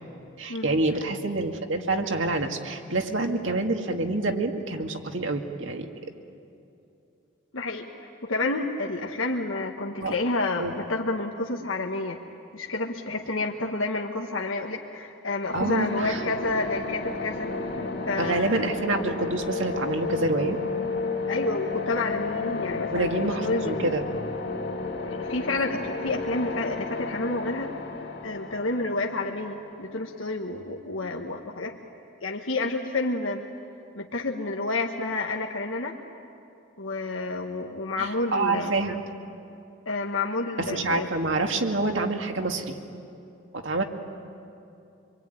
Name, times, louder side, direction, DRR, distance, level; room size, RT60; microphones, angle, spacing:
voice 1, 0.4-5.9 10.0-10.1 10.6-10.8 15.5-16.2 18.2-20.6 22.9-24.0 38.0-39.0 40.7-42.8 43.5-43.8, right 2 dB, 75° right, 4 dB, 2.0 m, -27 dB
voice 2, 7.5-7.9 8.2-12.2 12.5-17.5 18.0-18.7 21.3-23.9 25.1-27.7 28.2-31.8 32.2-33.4 33.9-36.0 36.8-38.7 39.9-41.1, left 2 dB, 85° left, 1 dB, 1.4 m, -29 dB
sound 1, 15.4-30.1, left 3 dB, 55° left, 2.9 m, -32 dB
26.5 x 23.0 x 9.2 m, 2.7 s
head